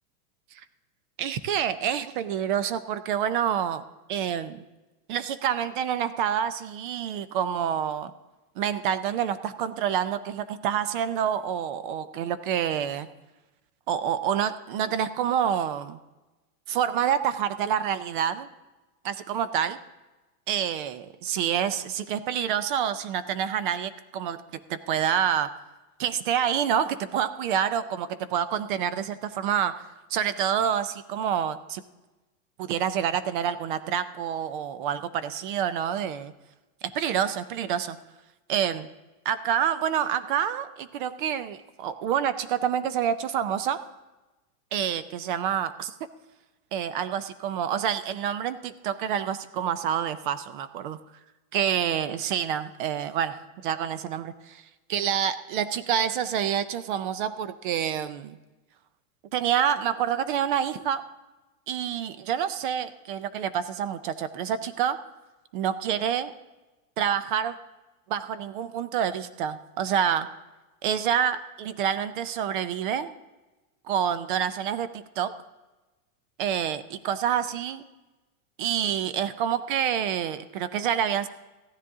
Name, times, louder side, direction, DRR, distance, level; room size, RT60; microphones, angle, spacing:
voice 1, 1.2-3.8 4.1-4.6 5.1-8.1 8.6-13.1 13.9-16.0 16.7-18.5 19.0-19.8 20.5-24.4 24.7-25.5 26.0-29.7 30.1-31.8 32.6-36.3 36.9-38.0 38.5-38.9 39.3-43.8 44.7-45.9 46.7-51.0 51.5-53.3 53.6-54.6 54.9-58.4 59.3-61.0 61.7-65.0 65.5-66.3 67.0-67.6 68.1-70.3 70.8-73.1 73.9-75.3 76.4-77.8 78.6-81.3, right 9 dB, 40° right, 14 dB, 0.4 m, -27 dB
14.5 x 10.5 x 3.6 m, 1.1 s
supercardioid pair, 160°, 43 cm